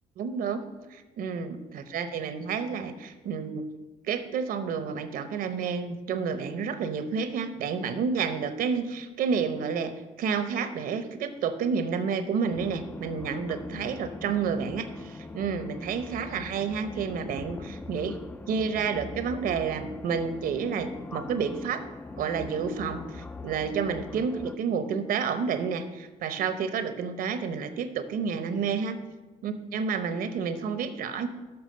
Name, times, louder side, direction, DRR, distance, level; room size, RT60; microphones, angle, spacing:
voice 1, 0.2-3.6 4.1-18.2 18.5-21.8 22.2-29.0 29.4-31.3, right 6 dB, 70° right, 10 dB, 0.8 m, -30 dB
sound 1, 12.5-24.6, left 3 dB, 10° left, 0.4 m, -41 dB
7.0 x 5.7 x 6.6 m, 1.2 s
supercardioid pair, 75°, 15 cm